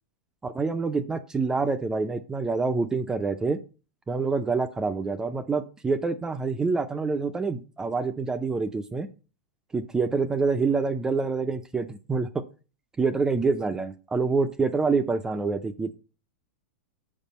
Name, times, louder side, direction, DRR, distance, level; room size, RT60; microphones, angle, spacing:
voice 1, 0.4-3.6 4.1-9.1 9.7-12.3 13.0-16.0, right 4 dB, 10° right, 10 dB, 0.3 m, -26 dB
5.3 x 4.9 x 4.1 m, 0.35 s
supercardioid pair, 145°, 6 cm